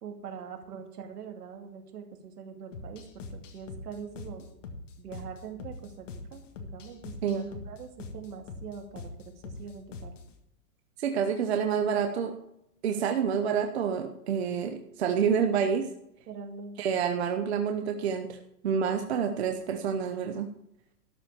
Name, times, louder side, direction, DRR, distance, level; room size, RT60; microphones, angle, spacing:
voice 1, 0.0-4.5 5.0-10.1 16.3-16.8, right 6 dB, 75° right, 4 dB, 2.5 m, -43 dB
sound 1, 2.7-10.3, left 3 dB, 50° left, 1.7 m, -43 dB
voice 2, 11.0-12.3 12.8-15.9 16.8-18.4 18.6-20.5, right 7 dB, 45° right, 6 dB, 0.8 m, -28 dB
12.5 x 5.9 x 7.4 m, 0.79 s
supercardioid pair, 180°, 47 cm